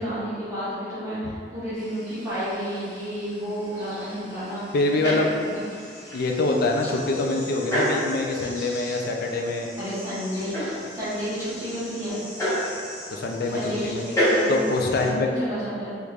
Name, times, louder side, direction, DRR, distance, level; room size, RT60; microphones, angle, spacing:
voice 1, 0.0-5.1 5.4-5.6 9.8-12.2 13.5-14.6 15.0-16.0, equal, 15° right, -13 dB, 1.0 m, -31 dB
sound 1, 1.7-15.1, equal, 20° left, 1.1 m, -31 dB
voice 2, 4.7-5.3 6.1-9.7 13.1-14.1 14.5-15.3, left 2 dB, 60° left, 1 dB, 0.4 m, -25 dB
3.3 x 3.1 x 2.4 m, 2.2 s
head